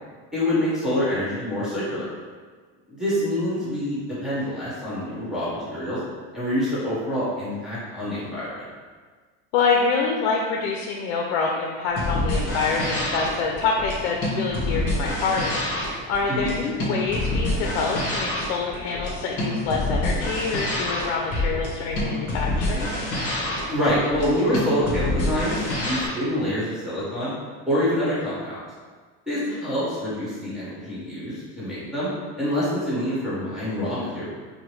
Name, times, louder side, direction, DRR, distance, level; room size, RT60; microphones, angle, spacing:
voice 1, 0.3-2.1 2.9-6.0 6.3-8.6 16.3-16.5 23.7-27.3 27.7-28.6 29.3-32.1 32.4-34.3, equal, ahead, -10 dB, 1.3 m, -26 dB
voice 2, 9.5-22.9 29.3-29.6, left 4 dB, 85° left, 0 dB, 0.5 m, -26 dB
sound 1, 11.9-26.1, left 1 dB, 40° left, 1.2 m, -27 dB
4.9 x 2.2 x 3.2 m, 1.5 s
cardioid pair, 150°, 34 cm